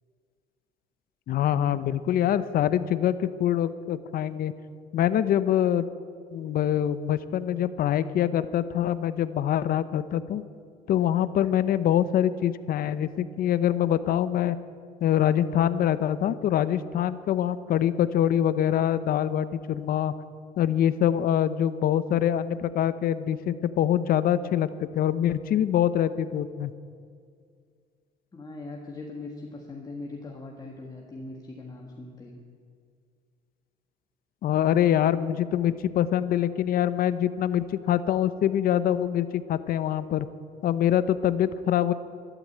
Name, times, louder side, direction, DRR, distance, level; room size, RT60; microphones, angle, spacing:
voice 1, 1.3-4.5 4.9-5.9 6.3-10.4 10.9-14.6 15.0-20.1 20.6-26.7 34.4-40.3 40.6-41.9, left 10 dB, 60° left, 14 dB, 0.8 m, -24 dB
voice 2, 28.3-32.4, left 2 dB, 20° left, 1 dB, 1.6 m, -40 dB
13.0 x 12.5 x 8.6 m, 2.2 s
cardioid pair, 110°, 17 cm